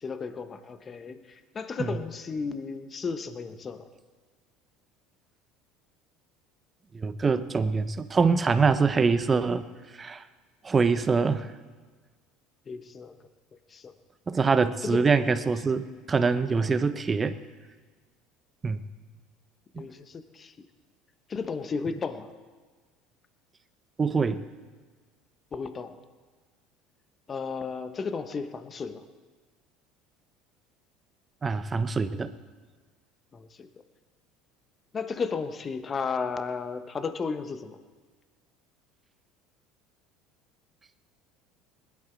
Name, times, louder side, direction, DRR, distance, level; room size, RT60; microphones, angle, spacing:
voice 1, 0.0-3.9 12.7-13.1 13.7-13.9 14.8-15.5 16.6-16.7 19.7-20.7 21.3-22.3 25.5-25.9 27.3-29.0 33.3-33.7 34.9-37.8, left 5 dB, 35° left, 9 dB, 1.2 m, -34 dB
voice 2, 6.9-9.6 10.0-10.2 10.6-11.5 14.3-17.4 18.6-18.9 19.7-19.9 24.0-24.4 31.4-32.3, right 4 dB, 25° right, 12 dB, 0.9 m, -24 dB
20.0 x 11.0 x 4.6 m, 1.4 s
hypercardioid pair, 75°, 0 cm